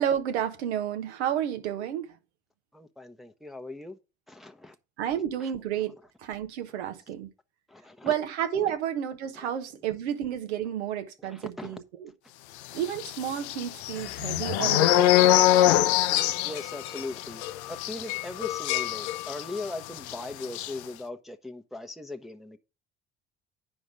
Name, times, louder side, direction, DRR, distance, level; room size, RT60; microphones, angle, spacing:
voice 1, 0.0-2.2 5.0-7.3 8.0-12.1 12.7-15.5, right 10 dB, 80° right, 1.3 m, -31 dB
voice 2, 2.7-4.0 4.3-4.7 5.1-5.5 6.7-6.8 7.7-8.1 8.6-8.8 9.3-9.5 11.2-11.8 16.4-22.6, left 2 dB, ahead, 0.9 m, -40 dB
sound 1, 13.0-19.7 20.0-20.1 20.4-20.7, left 14 dB, 80° left, 0.6 m, -24 dB
9.6 x 5.2 x 5.0 m
hypercardioid pair, 60°, 33 cm